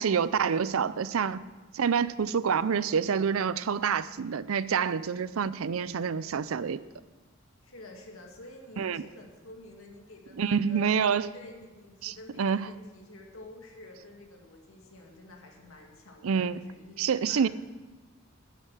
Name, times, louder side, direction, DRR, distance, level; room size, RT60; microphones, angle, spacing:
voice 1, 0.0-1.4 1.7-6.8 8.8-9.0 10.4-11.3 12.0-12.7 16.2-16.6 17.0-17.5, right 6 dB, 90° right, 17 dB, 0.5 m, -27 dB
voice 2, 7.6-10.9 11.3-17.5, left 2 dB, 80° left, 1 dB, 2.2 m, -49 dB
10.5 x 10.0 x 6.1 m, 1.2 s
head